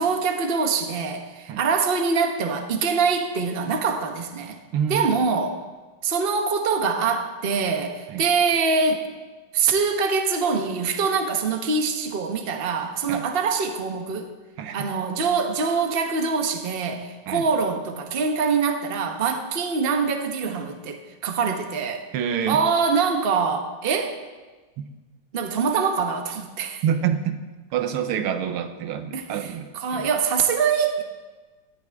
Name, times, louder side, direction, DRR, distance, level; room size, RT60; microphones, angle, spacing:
voice 1, 0.0-4.6 4.9-5.6 6.0-9.1 9.5-14.3 14.7-22.1 22.5-24.2 25.3-26.8 29.1-31.0, right 5 dB, 35° right, 4 dB, 1.1 m, -24 dB
voice 2, 4.7-5.2 8.1-8.2 13.1-13.2 14.6-14.9 17.3-17.5 22.1-22.6 24.8-24.9 26.8-27.4 27.7-30.1, right 8 dB, 80° right, 8 dB, 1.7 m, -27 dB
17.5 x 13.0 x 3.6 m, 1.3 s
omnidirectional pair, 2.4 m